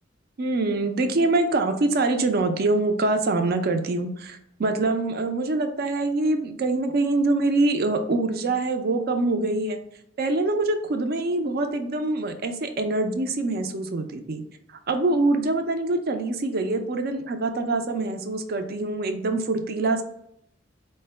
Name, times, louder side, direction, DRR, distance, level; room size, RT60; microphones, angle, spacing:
voice 1, 0.4-9.8 10.2-14.4 14.9-20.0, right 2 dB, 50° right, 7 dB, 0.5 m, -24 dB
4.4 x 2.1 x 3.3 m, 0.75 s
head